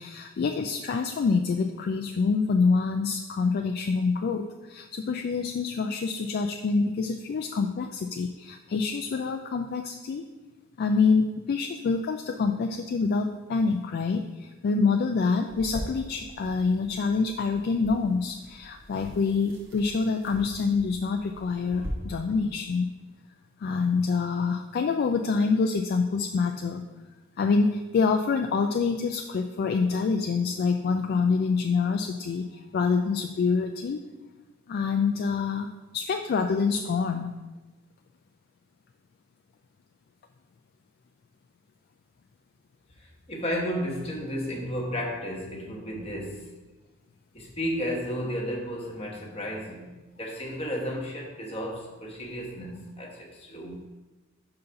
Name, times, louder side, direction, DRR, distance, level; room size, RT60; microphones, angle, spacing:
voice 1, 0.0-10.3 10.8-22.9 23.6-26.8 27.4-34.0 34.7-37.3, left 4 dB, 50° left, 4 dB, 0.3 m, -26 dB
sound 1, 15.5-21.9, equal, 60° right, 1.4 m, -43 dB
voice 2, 43.0-46.5 47.3-53.9, equal, 30° left, -1 dB, 1.2 m, -33 dB
5.5 x 3.9 x 5.6 m, 1.1 s
head